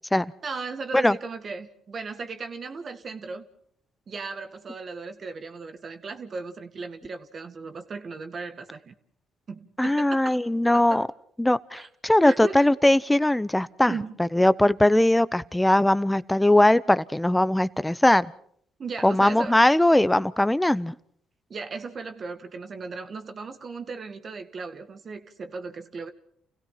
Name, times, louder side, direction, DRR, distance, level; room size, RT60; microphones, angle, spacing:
voice 1, 0.4-3.5 4.1-9.0 9.5-10.4 10.7-11.1 11.7-11.9 12.2-12.6 13.9-14.2 18.8-19.6 21.5-26.1, right 4 dB, 45° right, 2.1 m, -36 dB
voice 2, 9.8-11.1 11.4-13.9 14.2-18.3 19.0-20.9, left 1 dB, 10° left, 0.9 m, -20 dB
29.0 x 16.5 x 5.8 m
supercardioid pair, 65°, 0 cm